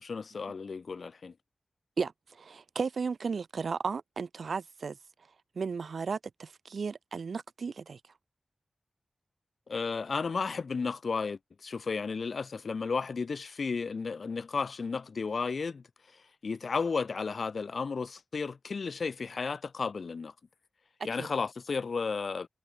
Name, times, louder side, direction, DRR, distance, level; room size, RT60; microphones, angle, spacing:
voice 1, 0.0-1.3 9.7-15.8 16.1-20.3 21.0-22.5, left 5 dB, 70° left, 7.3 m, -33 dB
voice 2, 2.0-5.0 5.6-8.0 21.2-21.3, right 5 dB, 80° right, 7.3 m, -34 dB
wide cardioid pair, 115°, 0 cm